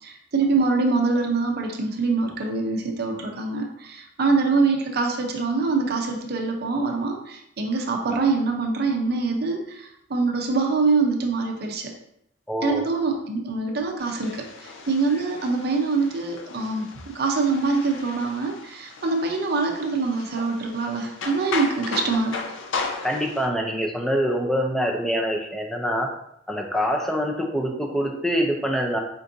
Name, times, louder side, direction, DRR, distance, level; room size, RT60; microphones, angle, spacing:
voice 1, 0.0-11.9 12.6-22.4, right 4 dB, 55° right, 2 dB, 0.5 m, -24 dB
voice 2, 12.5-12.8 23.0-26.1 26.5-29.0, equal, ahead, 1 dB, 0.4 m, -25 dB
sound 1, 14.0-23.5, left 4 dB, 85° left, 0.5 m, -36 dB
4.4 x 2.5 x 2.6 m, 0.75 s
head